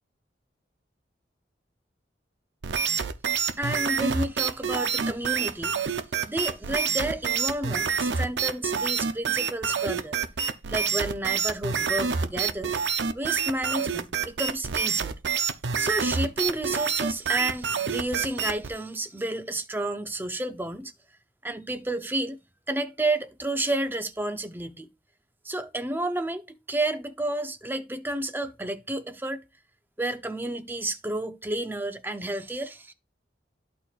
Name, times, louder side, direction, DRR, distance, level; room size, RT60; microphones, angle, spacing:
sound 1, 2.6-18.7, right 6 dB, 75° right, 0.6 m, -27 dB
voice 1, 3.5-10.2 10.7-12.7 13.1-15.2 15.8-20.9 21.4-22.4 22.7-24.9 25.4-29.4 30.0-32.9, right 1 dB, 10° right, 0.6 m, -31 dB
13.0 x 4.4 x 2.4 m
head